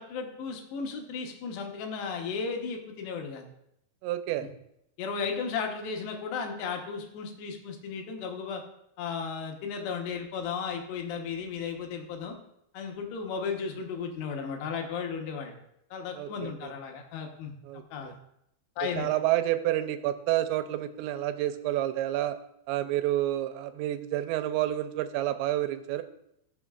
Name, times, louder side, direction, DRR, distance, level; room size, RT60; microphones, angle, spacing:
voice 1, 0.0-3.5 5.0-8.6 9.0-12.4 12.7-15.5 15.9-17.5 17.9-18.1 18.8-19.1, left 5 dB, 80° left, 3 dB, 3.2 m, -35 dB
voice 2, 4.0-4.5 16.2-16.7 17.6-18.1 19.0-22.4 22.7-26.0, right 14 dB, 90° right, 10 dB, 2.9 m, -29 dB
19.5 x 6.9 x 2.4 m, 0.79 s
omnidirectional pair, 5.0 m